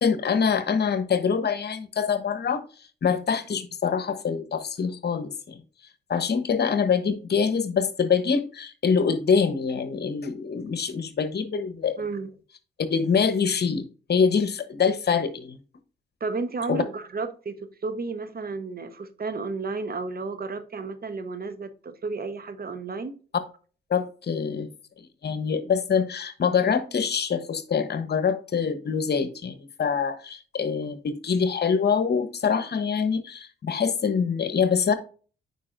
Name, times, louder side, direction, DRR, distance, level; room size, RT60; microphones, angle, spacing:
voice 1, 0.0-2.6 3.0-5.6 6.1-12.0 12.9-13.8 14.1-15.6 16.7-16.8 23.9-24.7 25.2-34.9, left 6 dB, 55° left, 1.0 m, -25 dB
voice 2, 12.0-12.3 16.2-23.2, right 4 dB, 45° right, 1.1 m, -32 dB
8.4 x 5.2 x 2.6 m
supercardioid pair, 55°, 21 cm